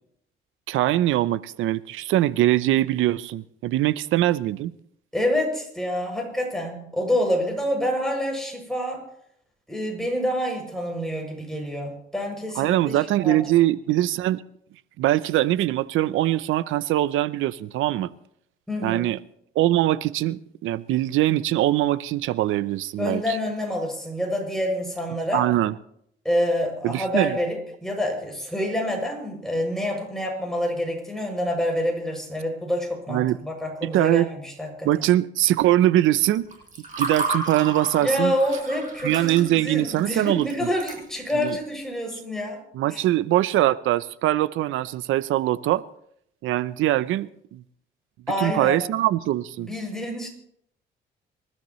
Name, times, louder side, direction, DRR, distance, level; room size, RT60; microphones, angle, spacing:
voice 1, 0.7-4.7 12.6-14.4 15.0-18.1 18.8-19.2 19.6-23.4 25.3-25.7 26.8-27.4 33.1-33.4 33.8-34.3 34.8-36.5 37.0-38.3 39.0-40.7 41.3-41.6 42.7-45.8 46.4-47.6 48.4-49.7, right 14 dB, 85° right, 17 dB, 0.7 m, -22 dB
voice 2, 5.1-9.0 9.7-13.4 18.7-19.1 23.0-25.4 26.2-35.0 38.0-42.6 42.9-43.0 48.3-48.8 49.6-50.3, left 1 dB, ahead, 0 dB, 7.3 m, -27 dB
Water / Fill (with liquid), 36.4-41.5, right 3 dB, 40° right, 6.8 m, -32 dB
27.5 x 13.5 x 3.2 m, 0.72 s
cardioid pair, 90°, 20 cm